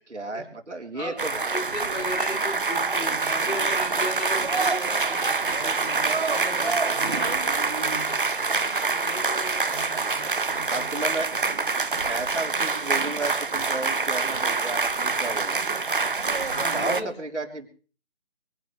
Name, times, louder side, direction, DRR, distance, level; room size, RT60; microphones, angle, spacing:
voice 1, 0.1-1.3 3.1-3.2 10.7-11.3 12.1-15.7 16.7-17.7, right 2 dB, 75° right, 3 dB, 3.6 m, -33 dB
voice 2, 0.9-10.9 16.4-17.1, left 1 dB, 80° left, 2 dB, 6.0 m, -37 dB
sound 1, 1.2-17.0, right 4 dB, 45° right, 0.8 m, -26 dB
23.0 x 16.0 x 3.3 m, 0.40 s
figure-of-eight pair, 165°, 36 cm